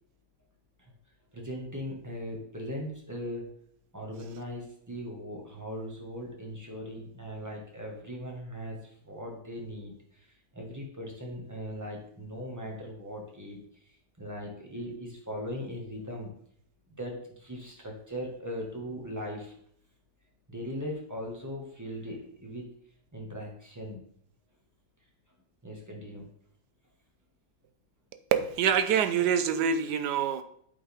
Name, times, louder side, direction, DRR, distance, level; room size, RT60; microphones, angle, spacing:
voice 1, 1.3-3.4 3.9-16.3 17.0-19.5 20.5-22.7 23.1-24.0 25.6-26.3, equal, 10° right, -1 dB, 1.7 m, -39 dB
voice 2, 28.3-30.4, right 8 dB, 80° right, 10 dB, 1.3 m, -25 dB
8.7 x 5.5 x 3.6 m, 0.65 s
omnidirectional pair, 1.8 m